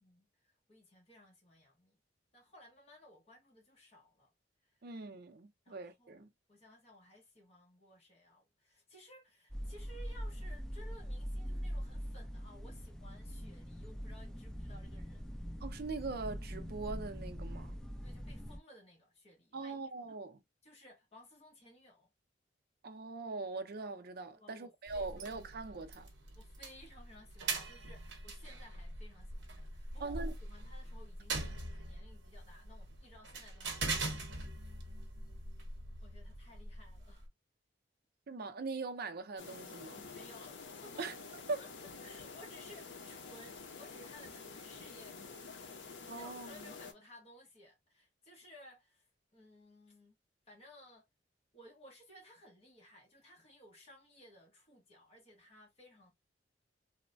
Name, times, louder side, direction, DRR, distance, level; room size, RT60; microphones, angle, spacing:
voice 1, 0.0-2.0 2.3-4.3 4.6-4.8 5.6-6.2 6.5-15.4 18.0-20.1 20.6-22.1 24.3-25.3 26.3-34.4 36.0-37.3 40.1-41.1 41.6-49.1 49.3-50.2 50.5-51.0 51.5-56.1, left 1 dB, 35° left, 1.0 m, -58 dB
voice 2, 4.8-6.3 15.6-17.8 19.5-20.4 22.8-26.1 30.0-30.3 38.3-40.0 41.0-41.1 41.5-41.6 46.1-46.7, right 3 dB, 55° right, 0.5 m, -41 dB
sound 1, 9.5-18.6, equal, 5° left, 0.3 m, -42 dB
sound 2, 24.9-37.3, right 3 dB, 85° right, 0.8 m, -42 dB
sound 3, 39.4-46.9, left 4 dB, 75° left, 0.6 m, -49 dB
3.1 x 2.1 x 2.5 m
head